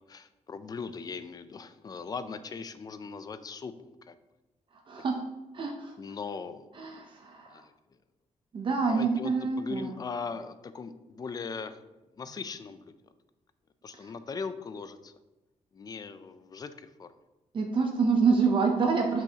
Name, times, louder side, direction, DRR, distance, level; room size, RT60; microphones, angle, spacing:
voice 1, 0.1-3.7 4.0-4.2 6.0-6.7 7.5-7.7 8.9-9.3 9.6-11.8 12.2-12.9 13.8-15.1 15.7-17.1, left 5 dB, 30° left, 12 dB, 0.4 m, -39 dB
voice 2, 4.9-5.2 5.5-5.9 6.8-7.7 8.5-9.9 13.9-14.1 17.5-19.2, right 5 dB, 40° right, 2 dB, 0.6 m, -27 dB
7.9 x 6.0 x 2.8 m, 1.0 s
wide cardioid pair, 180°, 13 cm